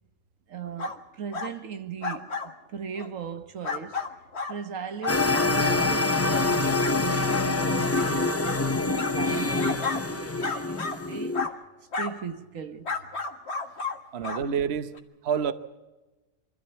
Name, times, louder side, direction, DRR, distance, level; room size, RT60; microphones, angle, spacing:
voice 1, 0.5-4.0 4.5-11.5 12.0-12.9, right 7 dB, 90° right, 1.6 m, -38 dB
sound 1, 0.8-1.0 1.3-1.5 2.0-2.5 3.0-3.1 3.6-4.5 5.0-5.5 6.1-6.2 6.8-6.9 7.3-7.5 7.9-8.1 8.4-8.6 9.0-10.0 10.4-11.0 11.3-11.5 11.9-12.1 12.8-14.0 14.2-14.4 14.9-15.0, left 4 dB, 55° left, 1.9 m, -32 dB
sound 2, 5.1-11.5, left 3 dB, 15° left, 0.5 m, -25 dB
voice 2, 14.1-14.9 15.2-15.5, right 7 dB, 55° right, 1.1 m, -27 dB
25.0 x 14.0 x 8.1 m
omnidirectional pair, 1.3 m